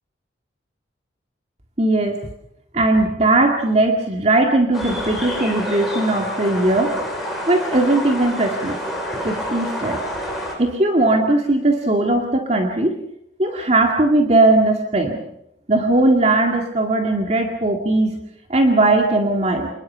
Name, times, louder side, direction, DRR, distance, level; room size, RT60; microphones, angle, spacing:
voice 1, 1.8-2.2 2.7-7.0 7.5-8.8 9.2-10.0 10.6-13.0 13.4-15.2 15.7-18.2 18.5-19.7, right 2 dB, 35° right, 2 dB, 2.1 m, -18 dB
sound 1, 4.7-10.6, equal, ahead, 7.4 m, -28 dB
28.5 x 21.0 x 5.8 m, 0.80 s
head